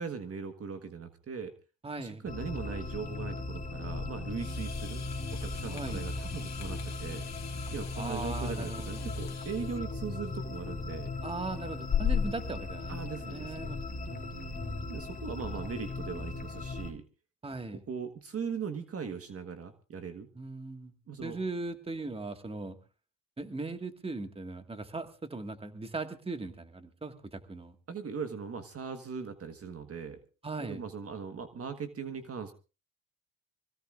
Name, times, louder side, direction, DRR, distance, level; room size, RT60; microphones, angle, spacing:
voice 1, 0.0-1.5 2.0-5.0 5.4-7.3 7.7-11.1 12.9-13.7 14.9-17.0 17.9-20.3 21.1-21.4 27.9-30.2 30.6-32.5, right 6 dB, 45° right, 8 dB, 1.5 m, -39 dB
voice 2, 1.8-2.2 5.7-6.0 8.0-9.0 11.2-14.8 17.4-17.8 20.4-20.9 21.2-22.8 23.4-27.8 30.4-30.8, right 3 dB, 15° right, 7 dB, 1.8 m, -39 dB
sound 1, 2.3-16.9, left 3 dB, 25° left, 2.1 m, -38 dB
sound 2, 4.3-12.5, left 8 dB, 50° left, 2.2 m, -38 dB
25.0 x 16.5 x 2.5 m, 0.33 s
cardioid pair, 90°, 33 cm